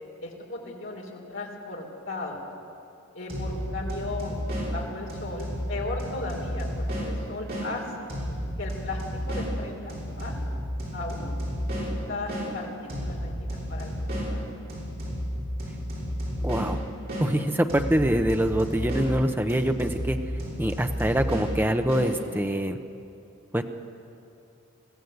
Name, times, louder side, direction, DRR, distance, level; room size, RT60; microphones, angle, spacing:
voice 1, 0.2-2.4 3.1-8.1 8.6-9.0 9.3-10.3 10.9-11.3 11.7-14.4, left 2 dB, 55° left, 0 dB, 3.3 m, -36 dB
sound 1, 3.3-7.7 8.1-12.5 12.9-17.3 17.7-22.1, equal, 45° right, 6.3 m, -32 dB
voice 2, 16.4-16.8 17.2-20.2 20.6-22.8 23.5-23.6, right 1 dB, 10° right, 6 dB, 0.7 m, -24 dB
21.5 x 15.0 x 8.0 m, 2.7 s
head